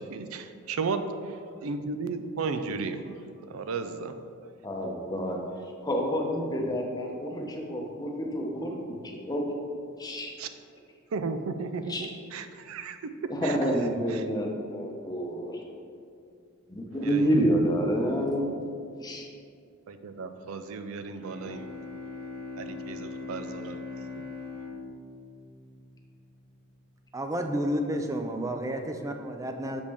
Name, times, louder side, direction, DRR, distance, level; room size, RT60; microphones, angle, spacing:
voice 1, 0.0-1.3 1.6-3.2 3.5-4.1 10.4-10.5 11.1-13.1 13.4-13.6 14.1-14.2 17.0-17.3 19.9-21.7 22.6-23.8, right 4 dB, 85° right, 9 dB, 0.4 m, -34 dB
voice 2, 4.6-5.4 5.8-8.8 9.2-9.5 10.0-10.3 11.9-12.1 13.3-15.6 16.7-18.5 19.0-19.3, equal, 20° left, 0 dB, 0.7 m, -28 dB
Bowed string instrument, 21.2-26.1, left 3 dB, 50° right, 1.5 m, -41 dB
voice 3, 27.1-29.8, equal, 15° right, 5 dB, 0.4 m, -31 dB
6.4 x 5.2 x 3.4 m, 2.4 s
head